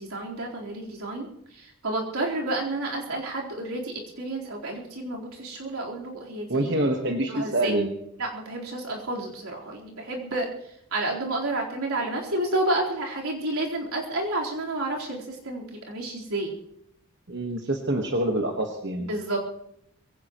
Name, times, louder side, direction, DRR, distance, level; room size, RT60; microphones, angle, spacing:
voice 1, 0.0-6.7 7.3-7.7 8.2-10.5 10.9-16.5 19.0-19.5, right 2 dB, 85° right, -2 dB, 4.1 m, -30 dB
voice 2, 6.5-7.9 17.3-19.1, right 1 dB, 50° right, 3 dB, 1.4 m, -26 dB
22.5 x 17.0 x 3.1 m, 0.76 s
head